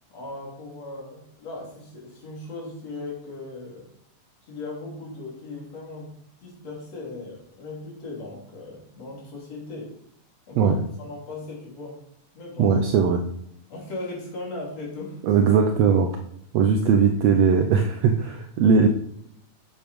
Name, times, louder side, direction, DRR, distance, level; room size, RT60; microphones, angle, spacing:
voice 1, 0.1-3.9 4.4-6.1 6.4-9.9 10.5-12.0 12.3-12.8 13.7-15.2, left 2 dB, 50° left, -3 dB, 4.2 m, -38 dB
voice 2, 12.6-13.2 15.2-16.1 16.5-18.9, right 6 dB, 75° right, 5 dB, 1.6 m, -19 dB
8.8 x 8.1 x 5.3 m, 0.70 s
omnidirectional pair, 3.8 m